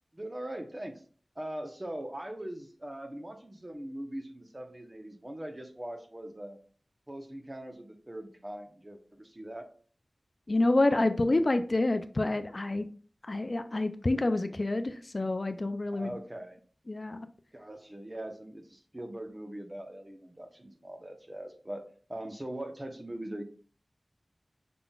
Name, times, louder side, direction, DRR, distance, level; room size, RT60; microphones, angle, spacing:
voice 1, 0.1-1.0 1.4-6.6 7.1-9.7 15.9-16.6 17.5-21.8 22.1-23.4, right 1 dB, 25° right, 5 dB, 1.0 m, -41 dB
voice 2, 10.5-12.9 13.3-16.2 16.9-17.3, left 2 dB, 50° left, 9 dB, 0.4 m, -28 dB
5.8 x 3.7 x 2.4 m, 0.43 s
wide cardioid pair, 55°, 0 cm